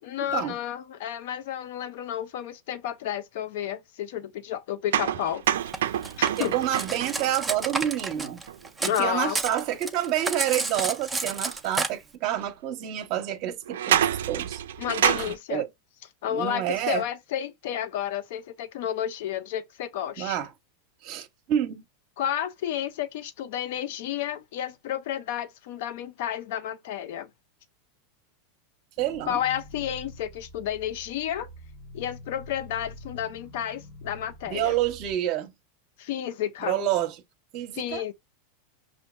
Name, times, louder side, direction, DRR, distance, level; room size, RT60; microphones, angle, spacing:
voice 1, 0.1-5.4 6.2-6.5 8.9-9.4 14.8-15.6 16.2-20.4 22.2-27.3 29.3-31.5 31.9-34.7 36.0-36.8 37.7-38.1, left 10 dB, 70° left, 0.6 m, -31 dB
sound 1, 4.9-8.7 11.5-11.6 12.4-12.5 13.7-15.4, right 10 dB, 85° right, 0.3 m, -27 dB
Cutlery silverware, 5.7-9.0 9.3-11.9, right 3 dB, 10° right, 0.5 m, -30 dB
voice 2, 6.4-8.4 8.8-14.0 14.3-14.6 15.2-15.7 16.3-17.1 20.2-20.5 21.0-21.8 29.0-29.4 34.5-35.5 36.6-37.2 37.5-38.1, right 11 dB, 55° right, 0.7 m, -28 dB
sound 2, 29.0-35.1, left 1 dB, 40° left, 0.9 m, -46 dB
5.2 x 2.5 x 2.2 m
hypercardioid pair, 115°, 0 cm